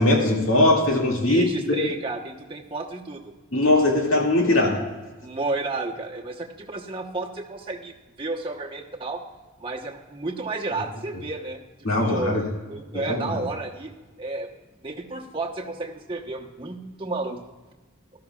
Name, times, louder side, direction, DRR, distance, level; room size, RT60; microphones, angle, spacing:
voice 1, 0.0-1.8 3.5-4.8 11.8-12.4 12.9-13.4, left 1 dB, 65° left, -1 dB, 2.2 m, -20 dB
voice 2, 1.3-3.3 5.2-9.2 9.6-11.6 12.0-12.4 12.7-13.9 14.2-14.5 14.8-17.4, right 3 dB, 25° right, -1 dB, 1.0 m, -32 dB
17.0 x 13.0 x 2.4 m, 1.2 s
head